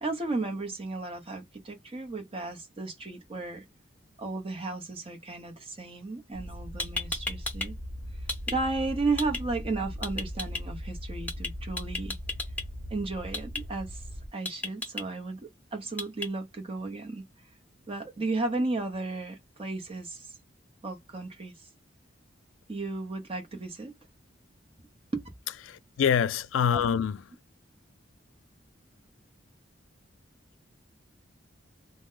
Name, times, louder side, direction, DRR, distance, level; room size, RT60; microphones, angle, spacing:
voice 1, 0.0-3.6 4.2-7.8 8.5-12.2 12.9-14.0 14.3-17.2 17.9-20.3 20.8-21.7 22.7-23.9 25.1-25.2 26.7-26.8, right 3 dB, 30° right, 0.8 m, -34 dB
sound 1, 6.3-14.3, equal, 80° right, 1.0 m, -39 dB
sound 2, 6.5-6.6 6.8-7.7 8.0-8.6 9.2-9.4 10.0-10.6 11.3-11.5 11.8-12.6 13.3-13.6 14.5-15.0 16.0-16.3, left 2 dB, 10° left, 0.6 m, -33 dB
voice 2, 25.7-27.2, left 7 dB, 90° left, 0.3 m, -25 dB
2.9 x 2.1 x 3.7 m
head